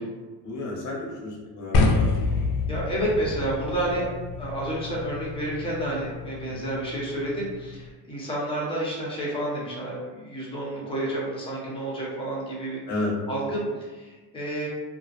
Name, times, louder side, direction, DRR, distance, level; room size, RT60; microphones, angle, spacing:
voice 1, 0.4-2.1 6.5-6.6 12.9-13.1, left 2 dB, 40° left, -2 dB, 0.9 m, -32 dB
sound 1, 1.7-7.9, left 3 dB, 60° left, 0.5 m, -28 dB
voice 2, 2.7-4.1 4.4-14.7, right 1 dB, 10° left, -5 dB, 0.9 m, -30 dB
2.5 x 2.3 x 2.4 m, 1.3 s
cardioid pair, 105°, 44 cm